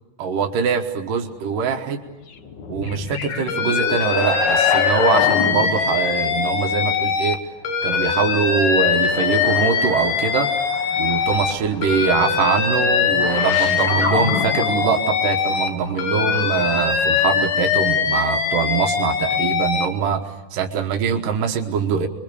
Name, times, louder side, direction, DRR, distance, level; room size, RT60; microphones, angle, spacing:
voice 1, 0.2-2.0 2.7-7.4 7.8-10.5 11.0-22.1, right 6 dB, 80° right, 3 dB, 3.0 m, -23 dB
sound 1, 2.1-6.0 8.1-17.3, left 6 dB, 55° left, 1.3 m, -29 dB
Alarm, 3.5-7.4 7.6-11.5 11.8-15.7 16.0-19.9, left 6 dB, 75° left, 3.4 m, -21 dB
26.5 x 22.5 x 6.9 m, 1.1 s
omnidirectional pair, 3.7 m